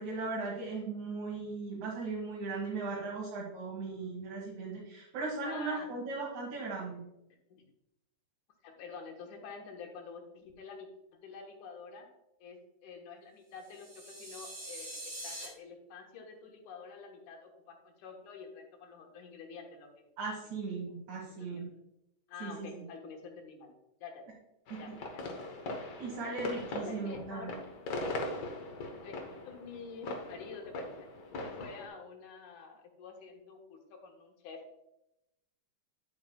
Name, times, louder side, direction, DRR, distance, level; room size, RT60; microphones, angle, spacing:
voice 1, 0.0-7.0 20.2-21.7 22.4-22.8 24.7-24.8 26.0-27.5, right 3 dB, 75° right, -5 dB, 3.0 m, -38 dB
voice 2, 5.4-5.9 7.5-7.6 8.6-10.9 11.2-12.1 12.4-20.1 20.4-20.5 21.4-21.7 22.3-23.7 24.0-24.3 24.8-25.3 26.1-26.2 26.7-27.6 29.0-29.2 29.4-31.1 31.4-34.7, left 5 dB, 85° left, 2 dB, 2.7 m, -48 dB
sound 1, 13.6-15.5, right 1 dB, 15° right, 2.3 m, -44 dB
sound 2, 24.7-31.9, left 2 dB, 60° left, 1.1 m, -40 dB
10.0 x 8.6 x 2.3 m, 0.87 s
omnidirectional pair, 3.4 m